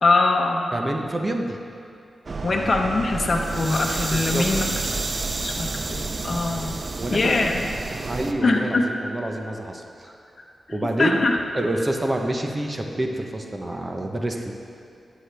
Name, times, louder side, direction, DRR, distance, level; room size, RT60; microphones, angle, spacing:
voice 1, 0.0-0.7 2.4-4.6 5.4-6.8 7.1-7.6 8.4-8.9 10.7-11.4, left 3 dB, 50° left, 1 dB, 1.0 m, -22 dB
voice 2, 0.7-1.6 4.1-4.5 7.0-7.4 8.0-10.2 10.7-11.2 11.5-14.5, right 1 dB, 30° right, 3 dB, 0.9 m, -27 dB
sound 1, 2.3-8.3, right 3 dB, 45° right, 0.5 m, -29 dB
12.5 x 8.4 x 3.4 m, 2.6 s
wide cardioid pair, 80°, 0 cm